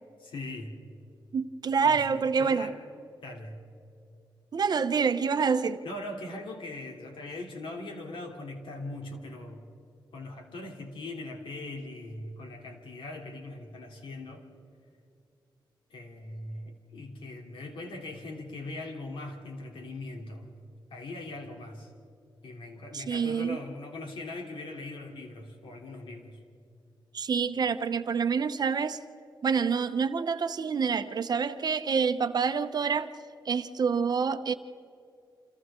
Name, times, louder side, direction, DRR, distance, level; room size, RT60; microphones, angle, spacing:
voice 1, 0.2-0.7 1.8-2.8 3.2-3.6 5.8-9.6 10.1-14.4 15.9-20.5 20.9-21.9 22.4-26.4, left 2 dB, 85° left, 2 dB, 3.3 m, -40 dB
voice 2, 1.3-2.7 4.5-5.8 22.9-23.6 27.1-29.0 29.4-33.1 33.4-34.5, right 6 dB, 55° right, 10 dB, 0.9 m, -27 dB
29.0 x 27.0 x 3.8 m, 2.5 s
wide cardioid pair, 115°, 8 cm